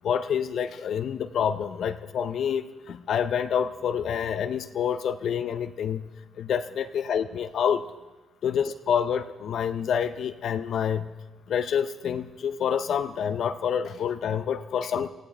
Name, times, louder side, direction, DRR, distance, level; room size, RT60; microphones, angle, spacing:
voice 1, 0.0-6.0 6.4-7.8 8.4-11.1 11.5-15.1, left 8 dB, 65° left, 10 dB, 0.5 m, -27 dB
23.5 x 15.5 x 3.3 m, 1.2 s
cardioid pair, 90°, 0 cm